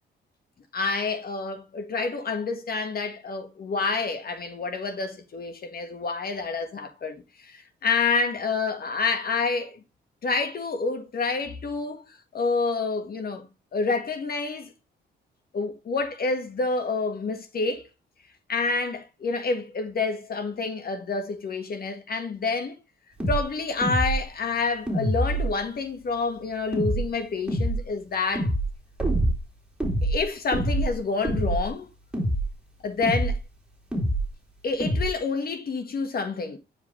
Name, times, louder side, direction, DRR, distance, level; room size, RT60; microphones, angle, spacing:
voice 1, 0.7-9.8 10.2-13.5 13.7-14.7 15.5-17.9 18.5-22.8 23.3-28.5 30.0-31.9 32.8-33.4 34.6-36.6, left 4 dB, 50° left, 1.7 m, -28 dB
sound 1, 23.2-23.4 23.8-24.2 24.9-25.6 26.7-27.1 27.5-27.8 28.4-28.7 29.0-29.4 29.8-30.2 30.5-31.0 31.2-31.7 32.1-32.5 33.0-33.4 33.9-34.3 34.8-35.1, right 1 dB, 5° right, 3.6 m, -25 dB
9.5 x 5.1 x 3.3 m
cardioid pair, 90°, 20 cm